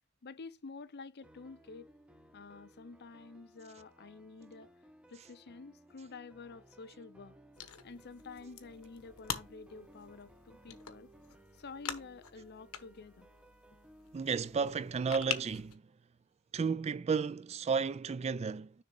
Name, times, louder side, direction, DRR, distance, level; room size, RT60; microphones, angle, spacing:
voice 1, 0.2-1.9 2.3-4.7 5.1-7.3 7.8-11.1 11.5-13.3, left 4 dB, 50° left, 0.6 m, -49 dB
sound 1, 1.2-15.1, right 1 dB, 5° right, 0.7 m, -60 dB
sound 2, 7.5-15.7, left 8 dB, 85° left, 1.2 m, -45 dB
voice 2, 14.1-15.8 16.5-18.8, right 5 dB, 30° right, 0.3 m, -33 dB
6.7 x 3.6 x 5.4 m
head